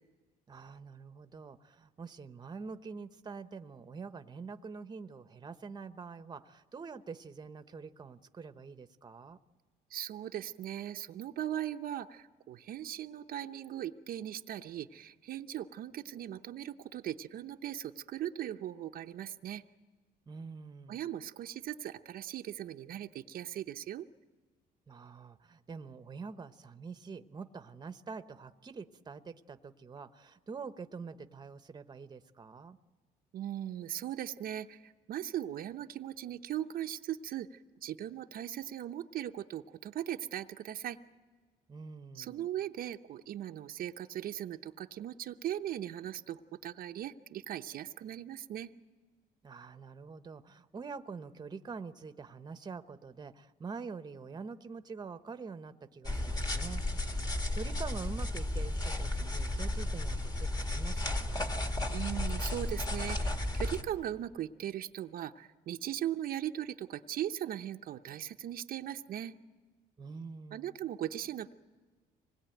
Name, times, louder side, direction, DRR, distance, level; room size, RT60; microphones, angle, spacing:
voice 1, 0.5-9.4 20.3-21.0 24.9-32.8 41.7-42.5 49.4-61.4 70.0-70.7, right 5 dB, 25° right, 11 dB, 0.9 m, -45 dB
voice 2, 9.9-19.6 20.9-24.1 33.3-41.0 42.1-48.7 61.9-69.3 70.5-71.5, right 11 dB, 60° right, 6 dB, 0.7 m, -39 dB
sound 1, 56.0-63.8, left 1 dB, 25° left, 1.9 m, -33 dB
25.5 x 20.0 x 9.1 m, 1.5 s
cardioid pair, 110°, 17 cm